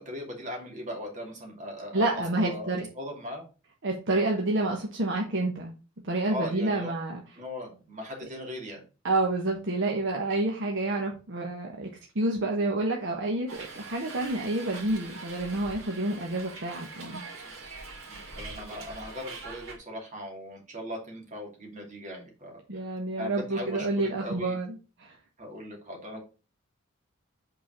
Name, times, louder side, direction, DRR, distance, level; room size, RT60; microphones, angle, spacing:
voice 1, 0.0-3.5 4.1-4.2 6.3-7.0 7.4-8.8 18.1-24.6 25.4-26.2, left 1 dB, 35° right, 1 dB, 2.5 m, -39 dB
voice 2, 1.9-2.9 3.8-5.7 6.0-7.2 9.0-11.9 12.1-17.2 22.7-25.1, right 2 dB, 60° right, 0 dB, 1.2 m, -29 dB
Hiss, 13.5-19.8, right 3 dB, 85° right, 2.5 m, -43 dB
5.3 x 4.5 x 5.8 m, 0.33 s
head